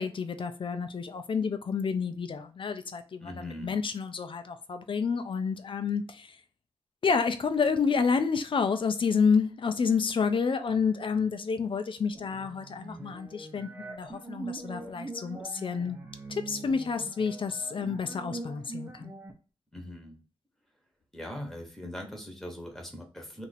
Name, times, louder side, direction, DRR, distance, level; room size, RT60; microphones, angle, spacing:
voice 1, 0.0-6.4 7.0-16.0 16.3-19.1, left 5 dB, 60° left, 0.5 m, -29 dB
voice 2, 3.2-3.7 19.7-20.2 21.1-23.4, left 1 dB, 5° left, 1.1 m, -41 dB
sound 1, 12.1-19.3, right 3 dB, 25° right, 0.8 m, -43 dB
2.8 x 2.5 x 4.1 m
wide cardioid pair, 80°, 10 cm